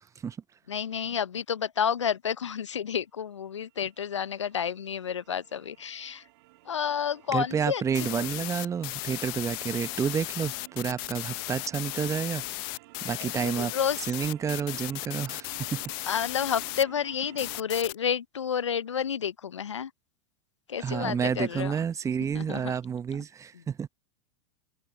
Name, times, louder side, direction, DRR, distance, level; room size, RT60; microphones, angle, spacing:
voice 1, 0.7-6.2 6.7-8.3 13.1-14.0 16.1-19.9 20.7-21.7 22.3-22.8 23.5-23.6, left 8 dB, 80° left, 0.8 m, -30 dB
sound 1, 3.7-17.6, right 22 dB, 55° right, 2.0 m, -53 dB
voice 2, 7.3-12.4 13.0-13.7 14.1-16.2 20.8-23.9, right 7 dB, 20° right, 1.0 m, -30 dB
sound 2, 7.9-16.8 17.4-17.9, left 29 dB, 50° left, 0.8 m, -36 dB
figure-of-eight pair, 90°, 15 cm